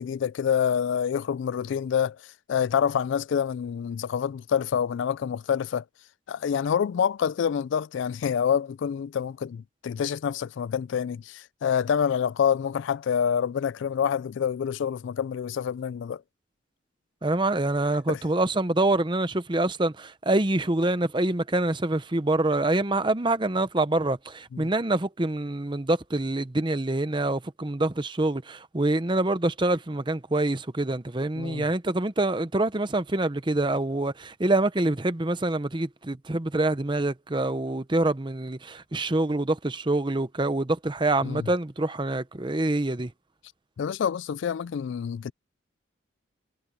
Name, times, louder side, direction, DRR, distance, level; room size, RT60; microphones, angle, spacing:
voice 1, 0.0-5.8 6.3-16.2 18.1-18.2 24.5-24.7 31.4-31.7 41.2-41.5 43.8-45.3, left 7 dB, 65° left, 0.3 m, -27 dB
voice 2, 17.2-43.1, right 2 dB, 25° right, 0.8 m, -26 dB
head